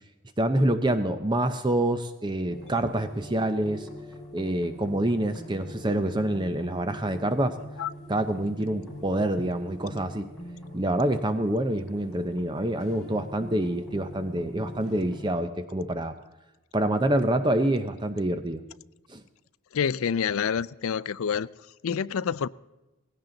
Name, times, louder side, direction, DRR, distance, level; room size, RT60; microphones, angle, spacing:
voice 1, 0.4-3.9 4.3-7.6 8.1-10.3 10.7-16.1 16.7-18.6 19.1-19.2, right 1 dB, 20° right, 0.6 m, -26 dB
sound 1, 2.5-15.3, equal, 5° left, 6.2 m, -43 dB
voice 2, 19.7-21.5 21.8-22.5, left 7 dB, 75° left, 0.4 m, -27 dB
18.5 x 16.5 x 3.9 m
head